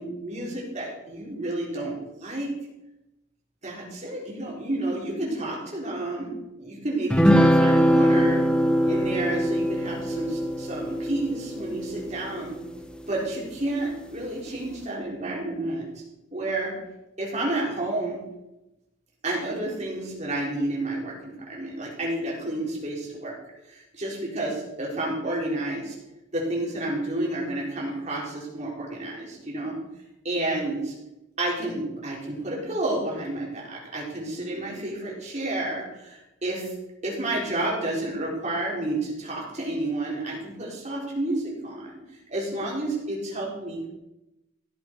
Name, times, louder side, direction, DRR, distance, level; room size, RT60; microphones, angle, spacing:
voice 1, 0.0-2.5 3.6-6.3 6.6-8.4 8.8-12.5 13.1-16.0 16.3-16.7 17.2-18.2 19.2-23.3 23.7-25.9 26.3-29.8 30.2-30.9 31.4-36.7 37.0-42.0 42.3-43.9, right 1 dB, 35° right, -4 dB, 4.5 m, -30 dB
sound 1, 7.1-12.8, equal, 5° left, 0.7 m, -22 dB
15.5 x 10.5 x 4.8 m, 0.96 s
head